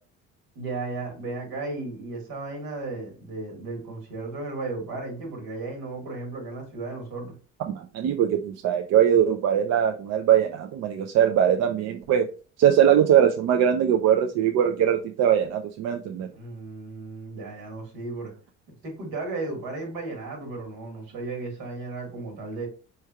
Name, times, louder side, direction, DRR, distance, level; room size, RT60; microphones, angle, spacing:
voice 1, 0.6-7.3 16.3-18.3 18.8-22.7, right 3 dB, 80° right, 1.8 m, -35 dB
voice 2, 7.7-12.3 12.6-16.3, right 9 dB, 60° right, 0.5 m, -21 dB
4.4 x 3.2 x 2.3 m
supercardioid pair, 85°, 30 cm